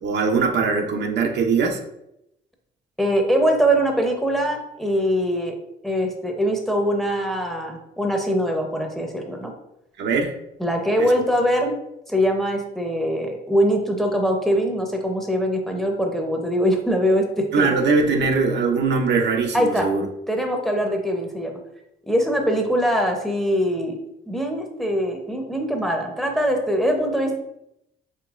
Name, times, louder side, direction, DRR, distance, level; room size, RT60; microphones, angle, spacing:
voice 1, 0.0-1.8 10.0-10.3 11.0-11.1 17.5-20.1, right 4 dB, 60° right, 3 dB, 0.6 m, -21 dB
voice 2, 3.0-5.5 5.8-9.5 10.6-11.8 12.1-17.7 19.5-19.9 20.3-21.5 22.1-24.0 24.3-27.4, equal, ahead, 3 dB, 0.7 m, -22 dB
5.1 x 2.9 x 2.4 m, 0.83 s
cardioid pair, 90°, 20 cm